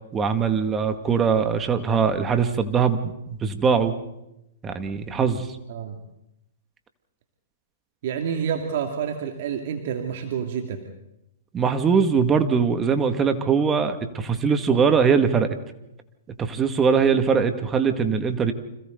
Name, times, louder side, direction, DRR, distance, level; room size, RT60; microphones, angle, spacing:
voice 1, 0.1-3.9 4.6-5.5 11.5-15.6 16.4-18.5, right 6 dB, 20° right, 7 dB, 2.2 m, -21 dB
voice 2, 5.7-6.0 8.0-10.8, right 7 dB, 55° right, 4 dB, 2.6 m, -28 dB
30.0 x 26.5 x 4.0 m, 0.86 s
hypercardioid pair, 115°, 0 cm